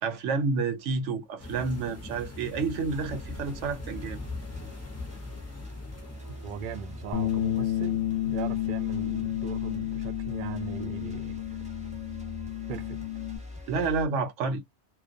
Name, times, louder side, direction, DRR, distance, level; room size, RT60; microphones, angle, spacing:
voice 1, 0.0-4.2 13.7-14.6, right 4 dB, 90° right, 1.0 m, -29 dB
sound 1, 1.4-10.5 11.0-11.2 11.5-11.6, left 2 dB, 20° left, 0.4 m, -43 dB
sound 2, 2.9-14.1, left 1 dB, 5° right, 0.8 m, -43 dB
voice 2, 6.4-11.4 12.7-13.0, right 7 dB, 60° right, 0.6 m, -38 dB
Bass guitar, 7.1-13.4, left 13 dB, 55° left, 0.7 m, -31 dB
2.2 x 2.2 x 2.5 m
omnidirectional pair, 1.2 m